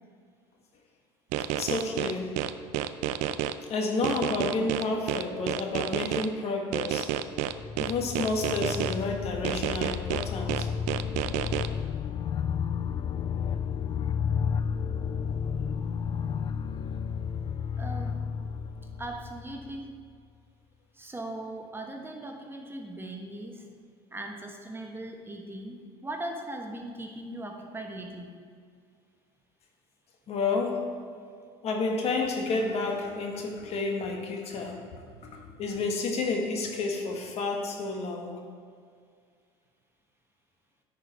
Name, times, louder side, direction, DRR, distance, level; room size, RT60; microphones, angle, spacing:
sound 1, 1.3-3.5 4.0-6.3 6.7-8.9 9.4-11.7, right 12 dB, 65° right, 0.4 m, -30 dB
voice 1, 1.6-2.4 3.7-7.2 7.8-10.7 30.3-31.0 31.6-35.0 35.3-38.3, left 3 dB, 50° left, 1 dB, 1.5 m, -30 dB
sound 2, 7.2-20.0, left 7 dB, 35° left, 0.3 m, -32 dB
voice 2, 17.8-18.2 19.0-19.9 20.9-23.7 24.1-28.3, right 1 dB, 15° right, 3 dB, 1.1 m, -39 dB
9.9 x 5.2 x 4.4 m, 2.1 s
hypercardioid pair, 80°, 14 cm